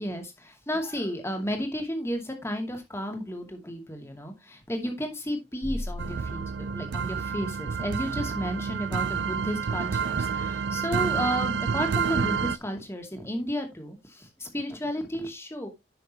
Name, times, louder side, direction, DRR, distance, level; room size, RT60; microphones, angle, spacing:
voice 1, 0.0-15.7, equal, 15° left, 4 dB, 2.3 m, -33 dB
sound 1, 5.6-8.0, left 1 dB, 50° left, 1.8 m, -39 dB
sound 2, 6.0-12.6, right 6 dB, 85° right, 0.4 m, -29 dB
10.5 x 6.3 x 3.0 m, 0.20 s
head